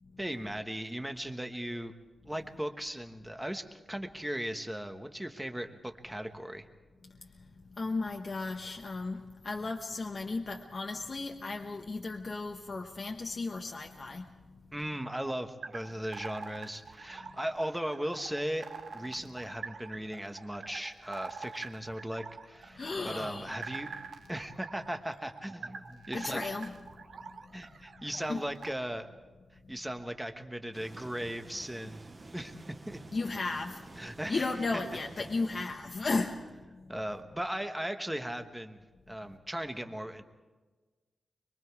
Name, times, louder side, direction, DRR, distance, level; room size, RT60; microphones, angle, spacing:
voice 1, 0.2-1.9 2.2-6.6 14.7-18.7 18.9-23.9 24.3-26.5 27.5-29.1 29.7-32.1 32.3-32.5 32.9-33.0 34.0-34.5 36.9-38.8 39.1-40.2, right 1 dB, 5° right, 6 dB, 1.2 m, -37 dB
voice 2, 7.8-14.2 22.8-23.6 26.1-26.7 28.3-28.4 33.1-33.8 34.3-36.4, left 3 dB, 35° left, 2 dB, 1.1 m, -34 dB
sound 1, 15.6-28.7, right 5 dB, 65° right, 1.4 m, -45 dB
sound 2, 30.7-35.7, right 3 dB, 25° right, 0.8 m, -50 dB
24.0 x 23.5 x 4.7 m, 1.3 s
wide cardioid pair, 165°, 0 cm